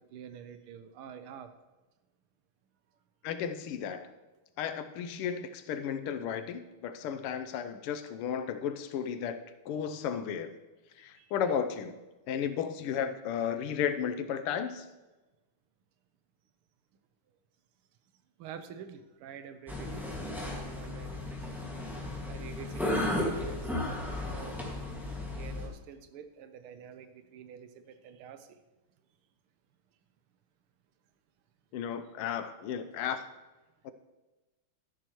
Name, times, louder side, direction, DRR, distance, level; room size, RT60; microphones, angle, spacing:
voice 1, 0.1-1.5 11.2-11.3 18.4-21.5 22.3-24.6 25.4-28.5, right 8 dB, 85° right, 10 dB, 1.6 m, -47 dB
voice 2, 3.2-4.1 4.6-9.4 9.6-10.5 11.0-11.9 12.3-14.8 31.7-33.2 33.8-33.9, left 8 dB, 85° left, 9 dB, 1.6 m, -34 dB
sound 1, 19.7-25.7, left 1 dB, ahead, 1.5 m, -34 dB
12.5 x 10.5 x 3.0 m, 1.1 s
omnidirectional pair, 2.4 m